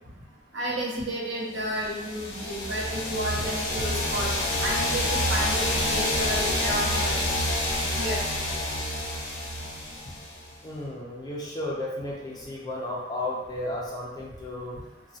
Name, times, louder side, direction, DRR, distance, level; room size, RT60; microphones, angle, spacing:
voice 1, 0.5-4.3 4.6-7.2 7.9-8.2, right 1 dB, 85° right, -4 dB, 0.8 m, -31 dB
sound 1, 1.8-10.5, left 1 dB, 80° left, 0.6 m, -28 dB
voice 2, 7.5-7.8 10.6-14.8, left 1 dB, 20° left, -4 dB, 0.5 m, -34 dB
3.0 x 2.3 x 2.7 m, 1.0 s
head